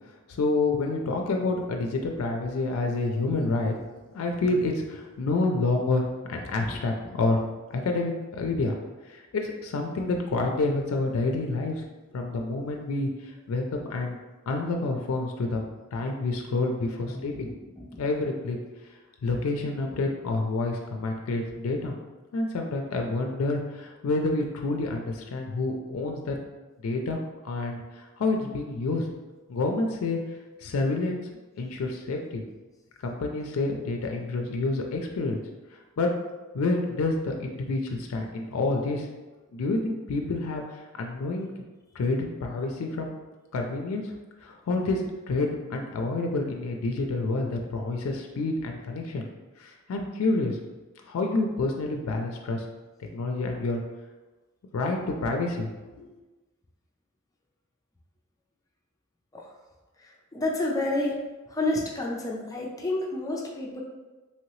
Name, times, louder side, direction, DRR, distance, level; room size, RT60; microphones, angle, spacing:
voice 1, 0.3-3.8 4.1-7.4 7.7-8.7 9.1-11.8 12.1-13.6 13.9-14.2 14.5-15.7 15.9-17.5 18.0-18.6 19.2-21.9 22.3-26.4 26.8-27.2 27.4-29.1 29.5-30.2 30.6-31.2 31.6-32.4 33.0-35.4 36.0-36.1 36.5-39.1 39.5-41.5 42.0-43.2 43.5-44.1 44.4-49.2 49.6-50.6 51.1-52.6 53.1-53.8 54.7-55.7 56.0-56.1, left 2 dB, 80° left, 2 dB, 0.4 m, -28 dB
voice 2, 60.0-61.2 61.5-63.8, left 2 dB, 15° left, -2 dB, 0.4 m, -30 dB
3.0 x 2.8 x 3.0 m, 1.2 s
head